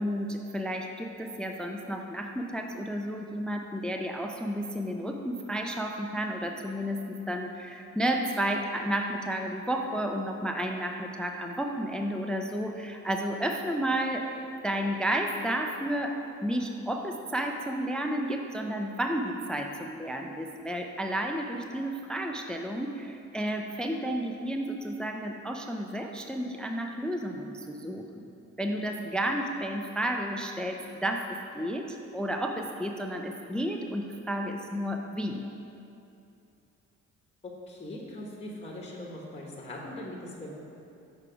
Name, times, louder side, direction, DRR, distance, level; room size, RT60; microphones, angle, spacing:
voice 1, 0.0-14.2 14.6-16.2 16.4-28.2 28.6-35.4, right 1 dB, 5° left, 3 dB, 0.4 m, -32 dB
voice 2, 37.7-40.5, left 1 dB, 20° left, -2 dB, 1.1 m, -40 dB
6.5 x 4.8 x 5.0 m, 2.7 s
cardioid pair, 90°, 30 cm